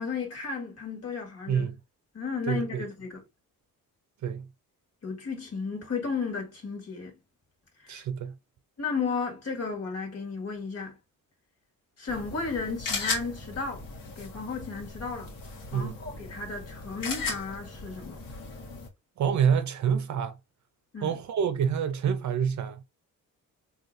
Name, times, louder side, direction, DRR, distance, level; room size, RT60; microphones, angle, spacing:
voice 1, 0.0-1.7 2.1-3.2 5.0-7.2 7.8-8.0 8.8-10.9 12.0-13.8 14.2-15.3 15.7-18.2 20.9-21.1, left 4 dB, 45° left, 1.7 m, -34 dB
voice 2, 1.5-1.8 2.5-2.8 4.2-4.5 7.9-8.3 15.7-16.0 19.2-20.4 21.0-22.8, right 7 dB, 55° right, 0.6 m, -27 dB
sound 1, 12.1-18.9, left 4 dB, 70° left, 1.4 m, -37 dB
4.0 x 2.9 x 2.5 m
cardioid pair, 115°, 35 cm